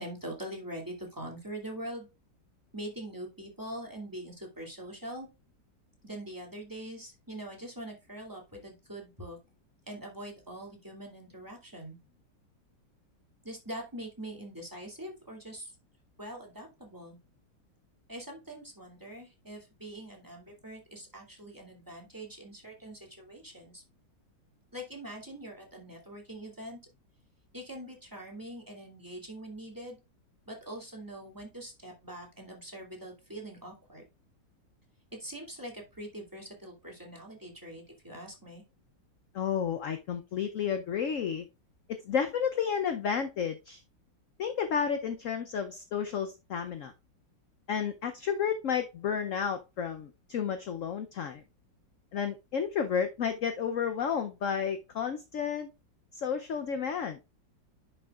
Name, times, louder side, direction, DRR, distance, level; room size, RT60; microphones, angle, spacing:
voice 1, 0.0-2.1 2.7-5.3 6.0-9.4 9.9-12.0 13.4-15.7 16.2-17.2 18.1-23.8 24.7-26.8 27.5-30.0 30.5-34.0 35.1-38.6, right 1 dB, 10° right, 0 dB, 2.3 m, -43 dB
voice 2, 39.3-41.4 41.9-43.8 44.4-46.9 47.7-51.4 52.1-55.7 56.1-57.2, left 7 dB, 60° left, 8 dB, 0.8 m, -31 dB
11.0 x 5.8 x 2.4 m, 0.26 s
omnidirectional pair, 2.0 m